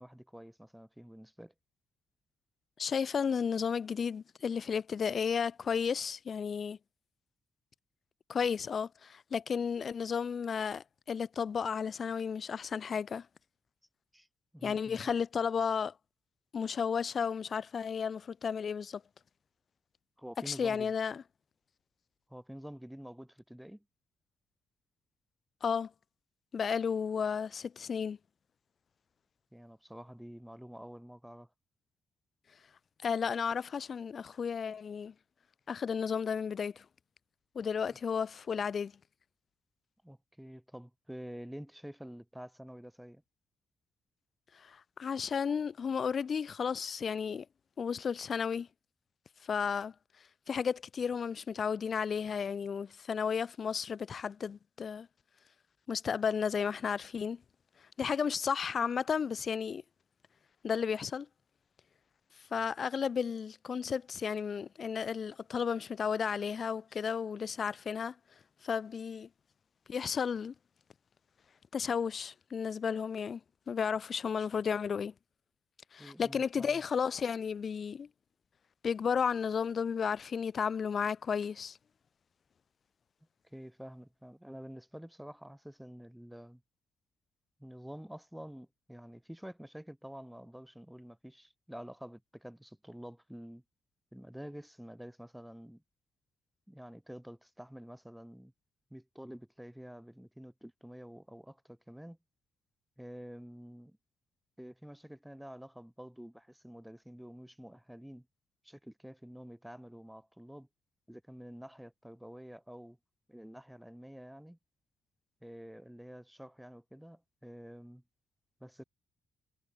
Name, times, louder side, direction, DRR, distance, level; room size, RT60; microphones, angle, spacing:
voice 1, 0.0-1.5 14.1-14.3 14.5-15.1 20.2-20.9 22.3-23.8 29.5-31.5 37.8-38.0 40.0-43.2 76.0-76.8 83.4-86.6 87.6-93.6 94.1-95.8 96.7-98.5 98.9-102.2 103.0-104.0 104.6-108.3 108.6-110.7 111.1-113.0 113.3-114.6 115.4-118.0 118.6-118.8, equal, ahead, 2.4 m, -48 dB
voice 2, 2.8-6.8 8.3-13.3 14.6-15.9 16.5-19.0 20.5-21.2 25.6-25.9 26.5-28.2 33.0-35.1 35.7-36.9 37.5-38.9 44.5-47.5 47.8-48.7 49.4-49.9 50.5-55.1 55.9-57.4 58.0-59.8 60.6-61.3 62.5-68.2 68.6-69.3 69.9-70.5 71.7-73.4 73.7-75.1 75.9-78.1 78.8-81.8, left 6 dB, 35° left, 2.3 m, -33 dB
cardioid pair, 165°, 0 cm